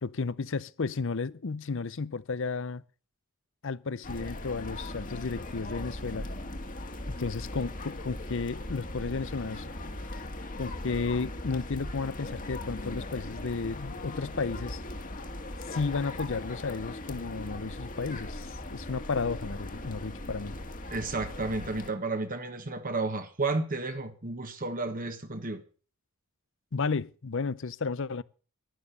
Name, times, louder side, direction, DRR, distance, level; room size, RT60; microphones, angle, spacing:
voice 1, 0.0-2.8 3.6-6.3 7.2-9.7 10.6-14.8 15.7-20.6 26.7-28.2, left 4 dB, 60° left, 0.7 m, -33 dB
sound 1, 4.0-21.9, left 1 dB, 40° left, 1.8 m, -39 dB
voice 2, 20.9-25.6, right 3 dB, 40° right, 1.4 m, -32 dB
12.5 x 12.0 x 6.8 m
head